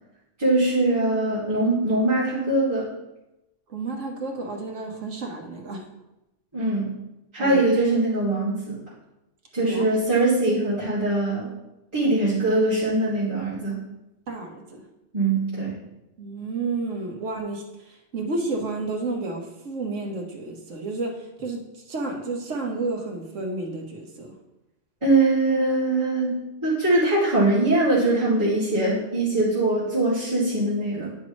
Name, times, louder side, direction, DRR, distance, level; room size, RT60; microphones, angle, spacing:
voice 1, 0.4-2.9 6.5-6.9 7.3-8.8 9.5-11.5 11.9-13.8 15.1-15.7 25.0-31.1, right 2 dB, 25° right, -12 dB, 2.3 m, -22 dB
voice 2, 3.7-5.9 7.4-7.6 9.7-9.9 14.3-14.8 16.2-24.3, right 3 dB, 85° right, 2 dB, 1.4 m, -31 dB
9.5 x 5.2 x 3.1 m, 0.94 s
omnidirectional pair, 1.2 m